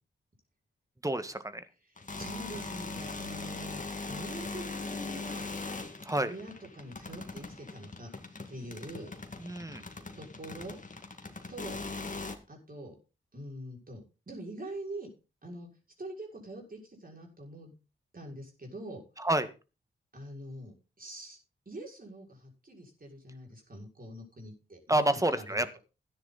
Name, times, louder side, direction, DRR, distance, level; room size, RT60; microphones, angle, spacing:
voice 1, 1.0-1.6 6.1-6.3 9.4-9.8 19.2-19.5 24.9-25.8, right 1 dB, 15° right, 11 dB, 1.8 m, -29 dB
voice 2, 1.8-5.5 6.2-8.1 8.5-9.1 10.1-10.8 11.5-11.8 12.5-13.0 13.3-15.1 15.4-15.7 16.0-17.7 18.1-19.0 20.1-21.4 21.7-25.8, right 1 dB, 45° right, 0 dB, 6.3 m, -44 dB
sound 1, 2.0-12.4, left 3 dB, 40° left, 2.1 m, -40 dB
14.0 x 9.9 x 4.2 m, 0.32 s
cardioid pair, 50°, 21 cm